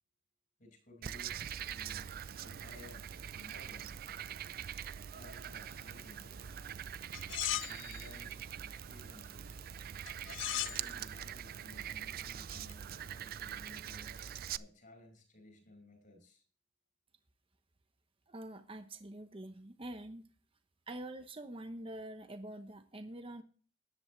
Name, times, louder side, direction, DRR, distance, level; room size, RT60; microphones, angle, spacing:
voice 1, 0.6-1.4 1.7-4.0 4.6-6.4 7.6-9.7 10.5-14.3 14.5-16.4, left 2 dB, 45° left, 5 dB, 5.5 m, -57 dB
Frog, 1.0-14.6, right 9 dB, 50° right, 0.4 m, -43 dB
sound 1, 7.1-8.1 10.1-10.8 12.5-12.7, left 14 dB, 70° left, 0.4 m, -37 dB
voice 2, 18.3-20.2 20.9-23.4, right 1 dB, 30° right, 7 dB, 0.9 m, -45 dB
14.0 x 10.5 x 3.2 m, 0.42 s
head